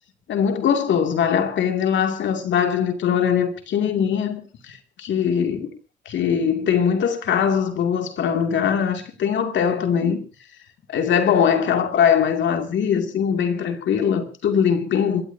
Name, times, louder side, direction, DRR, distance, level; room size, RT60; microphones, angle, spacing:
voice 1, 0.3-4.4 4.7-5.7 6.1-10.2 10.9-15.2, left 7 dB, 70° left, 2.6 m, -21 dB
26.5 x 14.0 x 2.8 m
cardioid pair, 90°, 20 cm